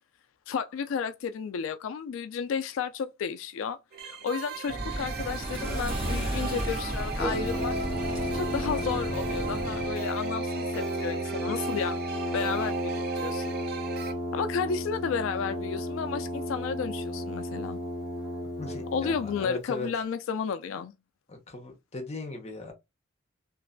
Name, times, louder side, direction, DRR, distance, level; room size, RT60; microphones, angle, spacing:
voice 1, 0.5-3.8 4.0-7.7 8.3-12.0 12.3-13.6 14.3-17.9 18.9-20.9, left 6 dB, 70° left, 0.3 m, -32 dB
sound 1, 3.9-14.1, right 4 dB, 50° right, 0.5 m, -37 dB
sound 2, 4.7-9.9, right 1 dB, 25° right, 1.5 m, -34 dB
Brass instrument, 7.2-19.4, equal, 5° right, 1.4 m, -33 dB
voice 2, 18.6-19.9 21.3-22.7, left 3 dB, 30° left, 0.8 m, -38 dB
3.0 x 2.6 x 2.5 m
head